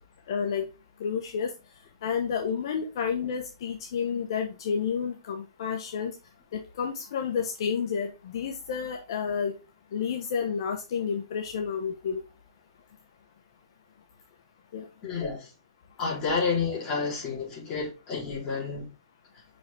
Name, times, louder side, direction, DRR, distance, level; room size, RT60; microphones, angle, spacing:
voice 1, 0.3-0.6 1.0-1.5 2.0-6.1 6.5-9.5 9.9-12.2 14.7-14.8, left 6 dB, 60° left, 1.2 m, -30 dB
voice 2, 15.0-15.5 16.0-18.9, left 5 dB, 25° left, 3.9 m, -30 dB
5.9 x 5.4 x 3.5 m
hypercardioid pair, 145°, 3 cm